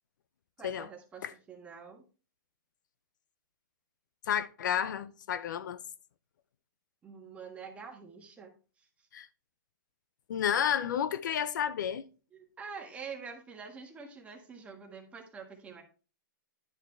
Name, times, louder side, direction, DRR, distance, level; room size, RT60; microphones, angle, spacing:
voice 1, 0.6-2.0 7.0-8.5 8.8-8.9 12.3-15.8, right 5 dB, 10° right, 1.6 m, -46 dB
voice 2, 4.3-5.8 9.1-9.3 10.3-12.1, left 9 dB, 65° left, 0.7 m, -31 dB
11.0 x 6.8 x 3.3 m
hypercardioid pair, 150°, 11 cm